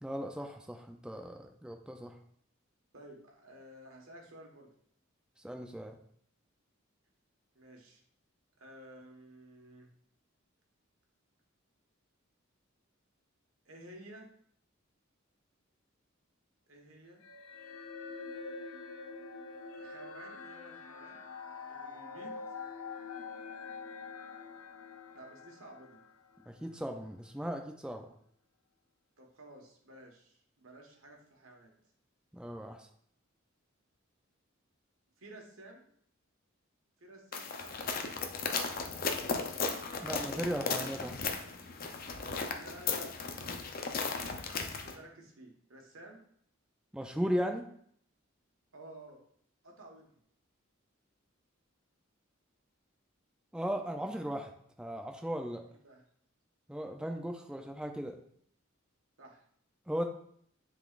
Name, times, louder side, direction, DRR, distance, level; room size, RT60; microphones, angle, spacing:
voice 1, 0.0-2.2 5.4-6.0 26.5-28.1 32.3-32.9 40.0-41.2 46.9-47.7 53.5-54.5 54.8-55.6 56.7-58.2 59.9-60.0, equal, 5° right, 3 dB, 0.4 m, -37 dB
voice 2, 2.9-4.7 7.5-8.0 8.6-9.9 13.6-14.3 16.7-17.2 19.7-21.2 21.7-22.6 25.1-26.0 29.2-31.7 35.2-35.8 37.0-38.1 38.7-39.1 42.6-44.4 44.8-46.2 48.7-49.2 49.6-50.1 55.7-56.0 59.2-59.4, right 1 dB, 85° right, 1 dB, 1.4 m, -53 dB
sound 1, 17.2-26.7, left 4 dB, 90° left, 0.6 m, -45 dB
sound 2, 37.3-45.0, left 4 dB, 45° left, 0.6 m, -36 dB
10.0 x 4.0 x 2.5 m, 0.65 s
head